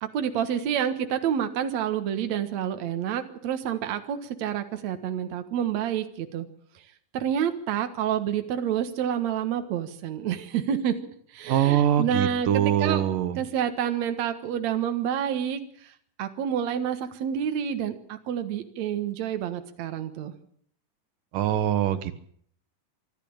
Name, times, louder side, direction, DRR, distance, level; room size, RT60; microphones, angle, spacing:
voice 1, 0.0-6.5 7.1-11.0 11.3-13.1 13.4-20.3, right 9 dB, 60° right, 8 dB, 2.6 m, -28 dB
voice 2, 11.5-13.4 21.3-22.1, right 10 dB, 90° right, 11 dB, 2.9 m, -23 dB
25.0 x 12.0 x 8.8 m, 0.62 s
omnidirectional pair, 3.7 m